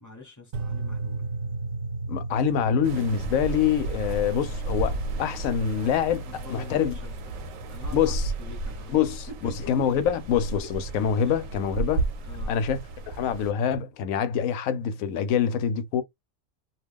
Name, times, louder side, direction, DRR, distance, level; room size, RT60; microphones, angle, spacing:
voice 1, 0.0-1.3 6.2-7.4 7.7-8.9 9.3-10.2 10.6-10.7 11.3-11.4 12.2-12.5, left 1 dB, 15° left, 0.8 m, -45 dB
sound 1, 0.5-8.7, right 2 dB, 60° right, 0.6 m, -36 dB
voice 2, 2.1-6.9 7.9-8.3 8.9-12.0 12.5-16.0, left 8 dB, 90° left, 1.0 m, -25 dB
sound 2, 2.8-13.5, right 2 dB, 90° right, 1.0 m, -33 dB
2.4 x 2.2 x 3.5 m
omnidirectional pair, 1.4 m